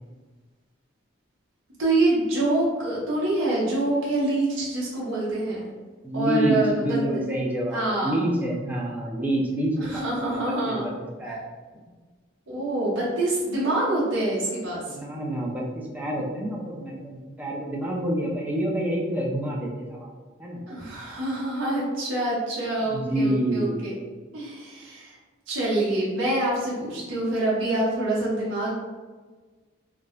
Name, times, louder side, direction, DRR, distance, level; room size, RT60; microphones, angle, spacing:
voice 1, 1.8-5.7 6.1-7.2 7.7-8.2 9.8-10.9 12.5-14.9 20.7-23.9 24.3-25.1 25.5-28.7, right 2 dB, 65° right, -7 dB, 0.8 m, -26 dB
voice 2, 6.0-10.9 11.2-11.4 11.7-11.8 14.9-20.1 20.4-20.6 22.9-23.8, right 1 dB, 10° right, -3 dB, 0.4 m, -28 dB
2.4 x 2.1 x 3.6 m, 1.4 s
head